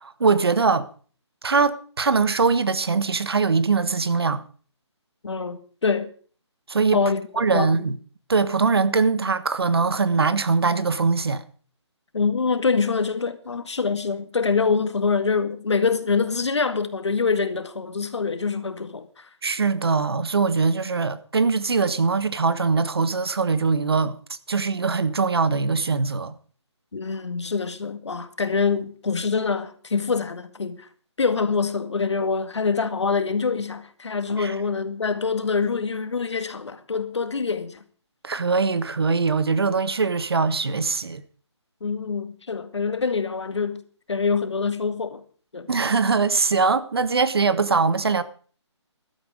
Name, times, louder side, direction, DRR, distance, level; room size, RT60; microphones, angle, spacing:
voice 1, 0.0-0.9 1.4-4.4 6.7-7.0 7.4-8.0 8.3-11.4 19.4-24.2 24.5-26.3 34.4-34.5 38.2-41.2 45.7-48.2, right 4 dB, 55° right, 1.3 m, -22 dB
voice 2, 5.2-6.1 6.9-7.8 12.1-19.3 26.9-30.9 31.2-37.8 41.8-43.8 44.1-45.2 45.5-45.7, left 5 dB, 65° left, 2.0 m, -25 dB
15.0 x 12.5 x 5.0 m
hypercardioid pair, 175°, 15 cm